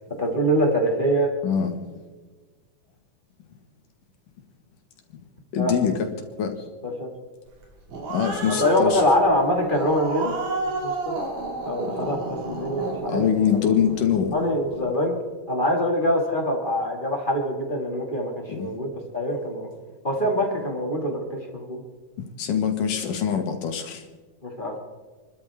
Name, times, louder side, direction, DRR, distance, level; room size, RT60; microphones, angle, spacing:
voice 1, 0.2-1.3 5.6-5.7 6.8-7.1 8.5-10.3 10.8-11.2 11.6-13.3 14.3-15.1 15.5-19.7 20.0-21.8 24.4-24.8, equal, 20° left, 0 dB, 1.9 m, -24 dB
voice 2, 5.5-6.1 6.4-6.5 8.1-9.0 13.1-14.3 18.5-18.7 22.4-24.0, left 8 dB, 85° left, 4 dB, 3.3 m, -23 dB
Growling, 7.6-14.4, right 3 dB, 70° right, 3.9 m, -31 dB
28.0 x 12.5 x 3.6 m, 1.3 s
omnidirectional pair, 3.7 m